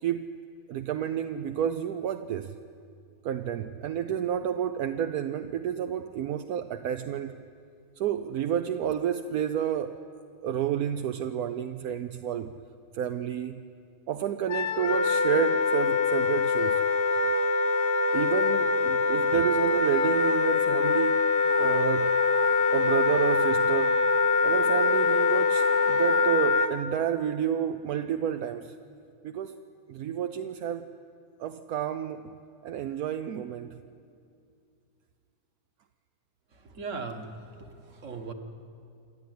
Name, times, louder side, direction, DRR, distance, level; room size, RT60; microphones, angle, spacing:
voice 1, 0.0-0.3 0.7-2.6 3.2-7.4 8.0-10.0 10.4-12.6 12.9-13.6 14.1-16.8 18.1-21.2 21.6-22.2 22.7-24.0 24.4-28.7 29.2-29.6 29.9-30.9 31.4-32.3 32.6-33.8, right 9 dB, 80° right, 8 dB, 1.2 m, -30 dB
Wind instrument woodwind instrument, 14.5-26.7, left 4 dB, 50° left, 1.1 m, -24 dB
voice 2, 36.5-38.3, right 4 dB, 55° right, 5 dB, 1.9 m, -39 dB
28.0 x 12.5 x 9.4 m, 2.4 s
omnidirectional pair, 1.6 m